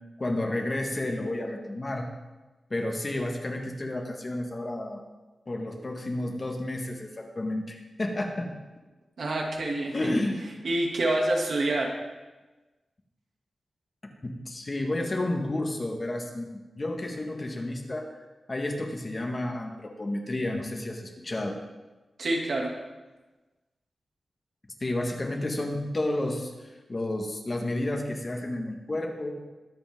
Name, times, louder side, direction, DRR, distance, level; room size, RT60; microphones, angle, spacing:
voice 1, 0.2-2.1 2.7-5.0 5.5-8.5 9.9-10.5 14.0-16.5 16.8-18.1 18.5-21.6 24.8-29.3, left 1 dB, 30° left, 2 dB, 1.6 m, -31 dB
voice 2, 9.2-10.1 10.6-11.9 22.2-22.7, right 1 dB, 65° right, 0 dB, 2.4 m, -27 dB
23.0 x 8.4 x 3.7 m, 1.2 s
wide cardioid pair, 160°, 0 cm